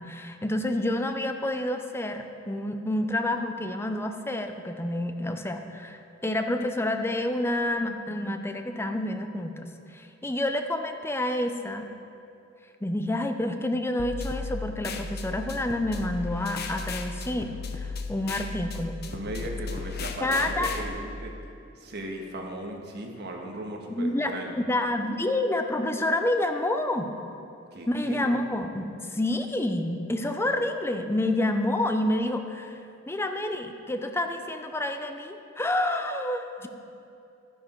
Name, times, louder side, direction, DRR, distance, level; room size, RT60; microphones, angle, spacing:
voice 1, 0.0-11.9 12.8-19.0 20.2-20.7 23.9-24.3 24.7-27.1 27.9-32.8 33.1-36.7, left 1 dB, 10° left, 6 dB, 0.6 m, -28 dB
sound 1, 14.0-20.8, left 4 dB, 55° left, 0.7 m, -35 dB
voice 2, 19.1-21.3 21.8-24.6 27.7-28.3, right 1 dB, 55° right, 1 dB, 1.5 m, -37 dB
11.5 x 10.5 x 4.5 m, 2.6 s
head